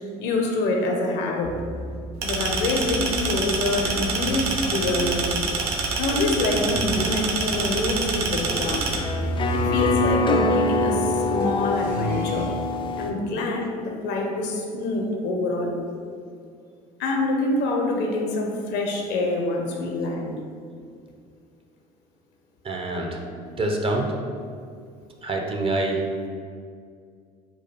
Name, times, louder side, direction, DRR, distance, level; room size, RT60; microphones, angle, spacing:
voice 1, 0.2-1.6 2.2-5.4 6.0-8.9 9.5-12.5 13.0-15.8 17.0-20.4, left 2 dB, 65° left, 1 dB, 0.7 m, -26 dB
sound 1, 1.4-12.5, right 1 dB, 70° right, 0.9 m, -36 dB
sound 2, 2.2-9.0, right 4 dB, 85° right, 0.5 m, -26 dB
sound 3, 7.5-13.1, left 2 dB, 25° left, 0.4 m, -25 dB
voice 2, 22.6-23.2 23.6-24.1 25.2-26.0, right 2 dB, 30° right, 1 dB, 0.6 m, -25 dB
4.7 x 2.2 x 2.9 m, 2.2 s
hypercardioid pair, 70°, 19 cm